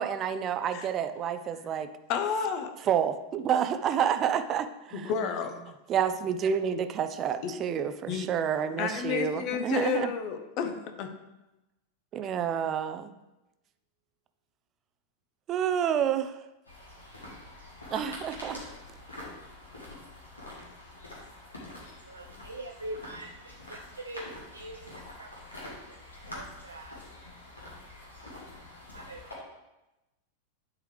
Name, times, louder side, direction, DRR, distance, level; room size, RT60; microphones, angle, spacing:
voice 1, 0.0-1.9 2.8-5.1 5.9-10.1 12.1-13.2 15.5-16.4 17.9-18.6, right 8 dB, 30° right, 10 dB, 0.5 m, -29 dB
voice 2, 2.1-2.7 4.9-5.5 7.4-7.5 8.1-8.3 8.8-11.1, left 6 dB, 40° left, 6 dB, 0.9 m, -31 dB
sound 1, 16.7-29.3, left 1 dB, 75° left, 2.4 m, -46 dB
voice 3, 22.1-26.0 26.3-27.0 27.6-27.7 28.9-29.2, right 1 dB, 75° right, 2 dB, 0.5 m, -44 dB
11.0 x 4.9 x 3.3 m, 0.99 s
figure-of-eight pair, 90°, 0 cm